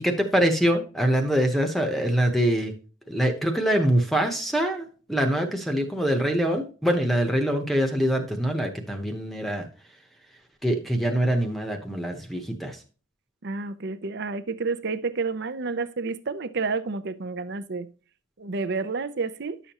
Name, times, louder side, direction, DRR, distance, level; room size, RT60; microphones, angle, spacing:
voice 1, 0.0-2.7 3.1-9.7 10.6-12.8, equal, ahead, 0.9 m, -24 dB
voice 2, 13.4-17.9 18.4-19.6, right 4 dB, 55° right, 0.7 m, -30 dB
11.0 x 7.0 x 3.0 m
head